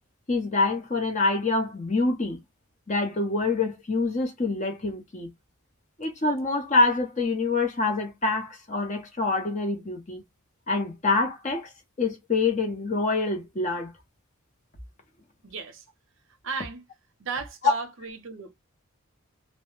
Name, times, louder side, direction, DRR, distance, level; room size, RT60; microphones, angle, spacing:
voice 1, 0.3-2.4 2.9-5.3 6.0-10.2 10.7-11.7 12.0-13.9, left 3 dB, 35° left, 0.7 m, -26 dB
voice 2, 15.4-15.9 16.4-16.9 17.2-18.5, right 4 dB, 60° right, 0.6 m, -34 dB
2.1 x 2.0 x 2.9 m
head